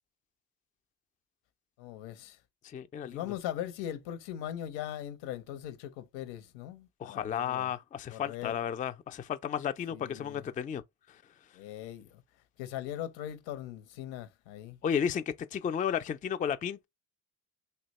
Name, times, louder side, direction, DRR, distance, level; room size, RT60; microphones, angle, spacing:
voice 1, 1.8-2.4 3.0-7.7 8.1-8.5 9.9-10.4 11.5-12.2 12.6-14.8, left 11 dB, 85° left, 0.8 m, -40 dB
voice 2, 2.6-3.3 7.0-10.8 11.1-11.2 14.8-15.2 15.5-16.9, left 8 dB, 20° left, 0.3 m, -33 dB
2.8 x 2.1 x 4.0 m
supercardioid pair, 75°, 43 cm